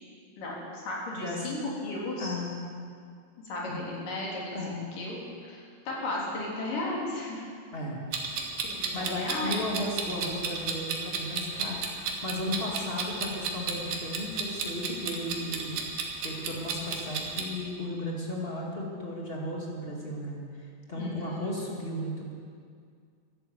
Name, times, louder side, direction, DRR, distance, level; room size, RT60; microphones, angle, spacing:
voice 1, 0.4-2.4 3.4-4.5 5.0-7.5 8.7-9.6 20.9-21.5, left 2 dB, 75° left, -4 dB, 4.8 m, -35 dB
voice 2, 1.1-1.4 2.2-2.5 3.6-3.9 4.5-4.8 7.7-8.0 8.9-15.8 16.2-20.4 20.9-22.3, left 1 dB, 20° left, -2 dB, 1.9 m, -35 dB
Clock, 8.1-17.4, right 5 dB, 80° right, 3.1 m, -33 dB
14.0 x 11.5 x 8.0 m, 2.2 s
omnidirectional pair, 3.8 m